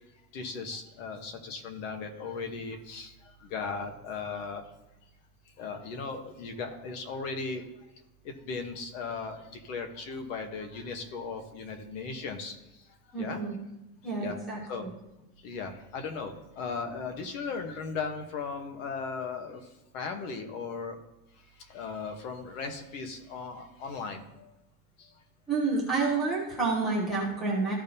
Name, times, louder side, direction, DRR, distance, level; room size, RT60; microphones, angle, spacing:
voice 1, 0.3-3.1 3.5-4.6 5.6-7.6 8.4-12.5 13.2-13.4 14.2-14.4 14.7-14.8 15.4-19.6 19.9-21.0 21.7-24.5, left 4 dB, 55° left, 5 dB, 1.3 m, -37 dB
voice 2, 13.1-13.5 14.0-14.9 25.5-27.7, right 3 dB, ahead, -4 dB, 0.4 m, -29 dB
14.0 x 5.3 x 2.8 m, 0.96 s
supercardioid pair, 180°, 47 cm